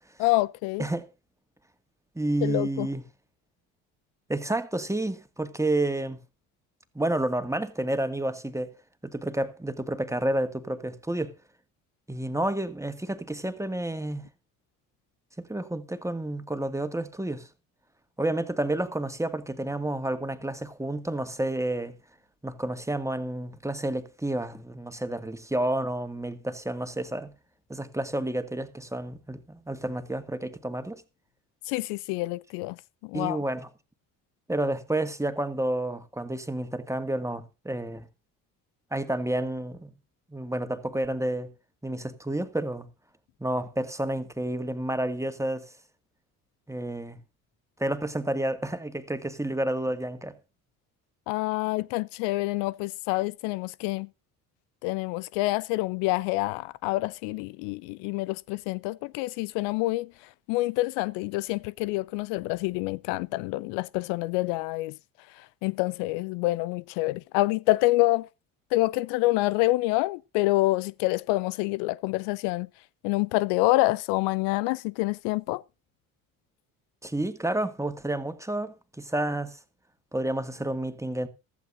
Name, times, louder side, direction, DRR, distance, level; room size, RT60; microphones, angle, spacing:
voice 1, 0.2-0.8 2.4-2.9 31.7-32.8 33.0-33.4 51.3-54.1 54.8-60.1 60.5-64.9 65.6-68.3 68.7-72.7 73.0-75.6, left 20 dB, 70° left, 0.7 m, -27 dB
voice 2, 2.2-3.1 4.3-6.2 6.9-8.7 9.0-11.3 12.1-14.2 15.4-17.5 18.2-22.0 22.4-27.3 27.7-31.0 33.1-33.7 34.5-38.1 38.9-39.9 40.3-41.5 41.8-42.9 43.4-45.7 46.7-47.2 47.8-50.4 77.0-79.6 80.1-81.3, right 1 dB, 5° right, 2.1 m, -30 dB
15.5 x 14.0 x 2.6 m
hypercardioid pair, 60°, 43 cm